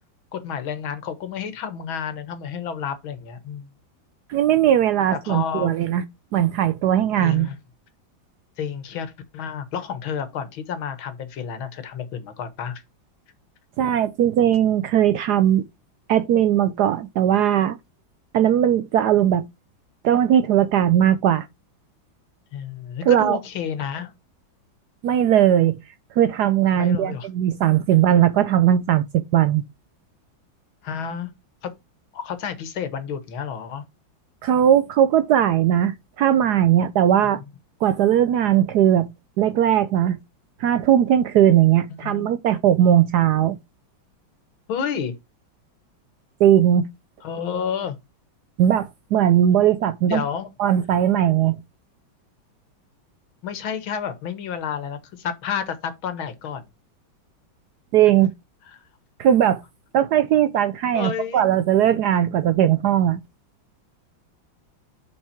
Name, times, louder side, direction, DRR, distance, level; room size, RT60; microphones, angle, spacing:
voice 1, 0.3-3.7 5.2-5.8 7.2-7.6 8.6-12.8 22.5-24.1 26.8-27.3 30.8-31.3 31.6-31.7 32.1-33.8 42.0-42.3 44.7-45.2 47.2-48.0 50.1-50.5 53.4-56.7 58.7-58.8 60.9-61.5, left 7 dB, 85° left, 2.1 m, -30 dB
voice 2, 4.3-6.0 6.3-7.5 13.8-15.6 16.1-17.8 18.3-19.4 20.0-21.5 23.1-23.4 25.0-25.8 26.2-29.6 34.4-37.4 37.8-39.1 39.4-40.2 40.6-43.6 46.4-46.9 48.6-50.2 50.6-51.6 57.9-58.3 59.2-59.6 59.9-63.2, right 10 dB, 75° right, 0.9 m, -18 dB
7.2 x 4.7 x 4.4 m
omnidirectional pair, 2.2 m